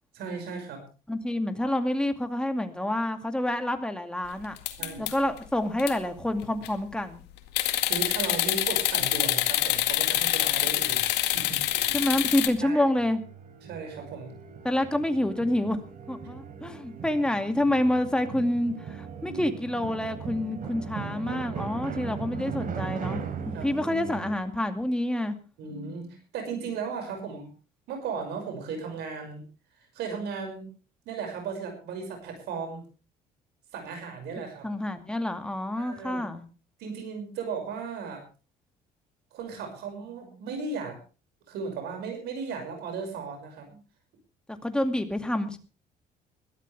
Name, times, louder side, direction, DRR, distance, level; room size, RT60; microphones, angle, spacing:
voice 1, 0.1-0.8 4.8-5.1 7.6-12.1 12.6-12.8 13.6-14.3 19.2-19.4 23.5-23.7 25.6-27.5 27.9-29.4 29.9-30.7 31.1-32.8 33.7-34.7 35.8-36.2 36.8-38.2 39.3-41.0 41.5-43.8, right 5 dB, 80° right, 4 dB, 6.1 m, -36 dB
voice 2, 1.1-4.6 5.0-7.2 11.9-13.2 14.6-15.8 16.1-25.3 34.6-36.4 44.6-45.6, left 1 dB, 5° left, 6 dB, 2.4 m, -28 dB
sound 1, 4.6-5.4 5.8-5.9 6.4-6.8 7.5-12.5, left 14 dB, 85° left, 2.0 m, -26 dB
sound 2, 10.8-24.4, right 6 dB, 55° right, 4.0 m, -39 dB
21.0 x 13.5 x 3.5 m, 0.34 s
cardioid pair, 110°, 17 cm